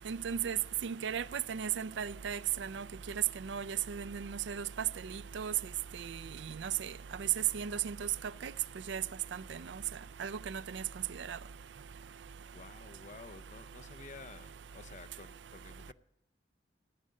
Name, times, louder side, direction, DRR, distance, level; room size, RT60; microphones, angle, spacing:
voice 1, 0.1-2.8 3.4-4.6 5.3-5.5 6.6-6.7 7.5-7.9 8.4-8.5 8.9-9.0 10.2-10.8 11.3-11.4, right 8 dB, 70° right, 0.4 m, -36 dB
voice 2, 12.5-14.5 14.7-15.9, left 4 dB, 40° left, 0.6 m, -51 dB
14.5 x 10.5 x 6.5 m
head